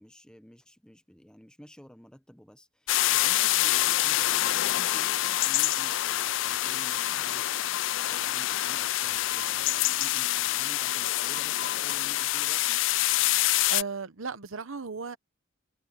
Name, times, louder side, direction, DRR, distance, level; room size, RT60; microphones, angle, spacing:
voice 1, 0.0-7.5 8.0-12.8, equal, 5° left, 1.0 m, -51 dB
sound 1, 2.9-13.8, left 15 dB, 65° left, 0.4 m, -26 dB
voice 2, 13.7-15.2, right 5 dB, 75° right, 1.0 m, -35 dB
head